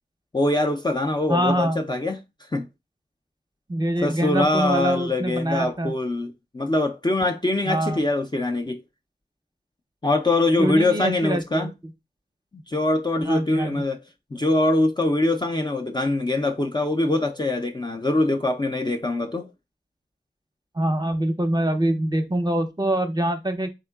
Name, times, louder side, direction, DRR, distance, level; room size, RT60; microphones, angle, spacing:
voice 1, 0.3-2.2 2.5-2.7 4.0-8.8 10.0-11.7 12.7-14.0 14.3-19.5, left 2 dB, 25° left, 0.4 m, -23 dB
voice 2, 1.3-1.8 3.7-5.9 7.7-8.0 10.6-11.7 13.3-13.8 20.7-23.7, right 1 dB, 20° right, 0.6 m, -24 dB
3.7 x 3.5 x 2.3 m
wide cardioid pair, 50°, 18 cm